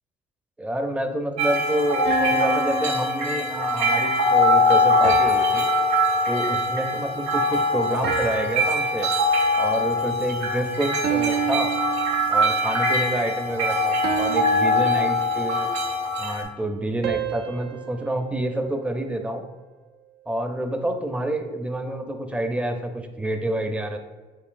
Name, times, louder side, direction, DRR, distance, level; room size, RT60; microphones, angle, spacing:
voice 1, 0.6-5.7 6.3-9.1 9.6-11.7 12.3-15.7 16.2-19.4 20.3-24.0, right 1 dB, 5° right, 5 dB, 0.5 m, -28 dB
sound 1, 1.4-16.4, left 1 dB, 85° right, 1.1 m, -22 dB
sound 2, 2.1-4.0 5.0-6.7 8.0-9.6 11.0-12.7 14.0-15.7 17.0-19.4, right 9 dB, 65° right, 0.4 m, -31 dB
6.5 x 2.7 x 2.5 m, 1.3 s
supercardioid pair, 80°, 18 cm